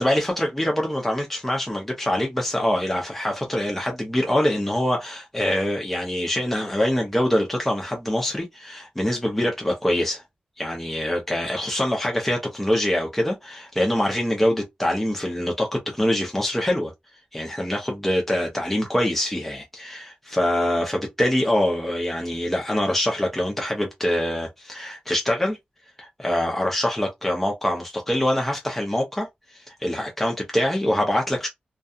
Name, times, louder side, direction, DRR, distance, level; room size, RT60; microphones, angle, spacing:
voice 1, 0.0-10.2 10.6-16.9 17.3-25.6 26.0-31.5, left 1 dB, 5° left, 0.6 m, -24 dB
2.7 x 2.3 x 2.3 m
wide cardioid pair, 140°, 3 cm